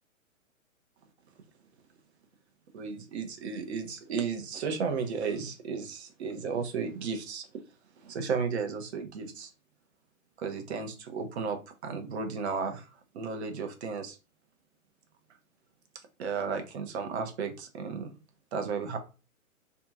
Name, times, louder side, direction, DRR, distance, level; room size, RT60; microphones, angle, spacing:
voice 1, 2.7-7.5 8.0-9.5 10.4-12.9 13.1-14.2 16.2-18.1 18.5-19.0, right 5 dB, 50° right, 5 dB, 0.7 m, -34 dB
2.7 x 2.3 x 2.6 m, 0.32 s
figure-of-eight pair, 130°, 43 cm